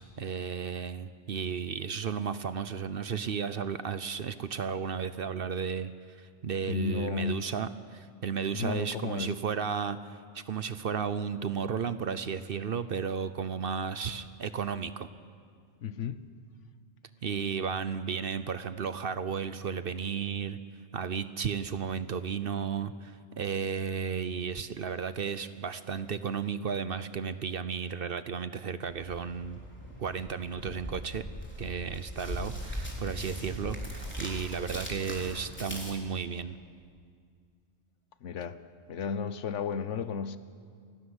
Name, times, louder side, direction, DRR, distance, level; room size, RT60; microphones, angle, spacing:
voice 1, 0.0-15.1 17.2-20.6 20.9-29.6 30.0-31.2 31.6-36.6, right 6 dB, 55° right, 13 dB, 0.9 m, -34 dB
voice 2, 6.7-7.4 8.5-9.3 15.8-16.2 38.2-38.6 38.9-40.4, left 6 dB, 85° left, 13 dB, 1.2 m, -33 dB
sound 1, 28.9-35.9, equal, 10° left, 3.9 m, -40 dB
29.0 x 12.5 x 9.7 m, 2.1 s
omnidirectional pair, 1.2 m